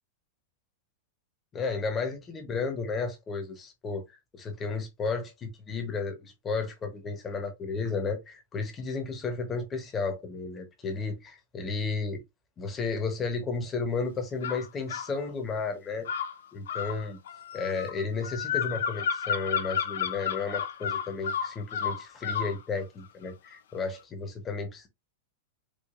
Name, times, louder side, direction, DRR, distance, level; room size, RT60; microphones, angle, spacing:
voice 1, 1.5-4.0 4.3-12.2 12.6-16.1 16.5-17.2 17.5-24.9, left 4 dB, 15° left, 0.9 m, -33 dB
sound 1, 14.4-15.1 16.0-22.6, left 7 dB, 85° left, 0.6 m, -32 dB
4.7 x 2.4 x 2.5 m
supercardioid pair, 170°, 0 cm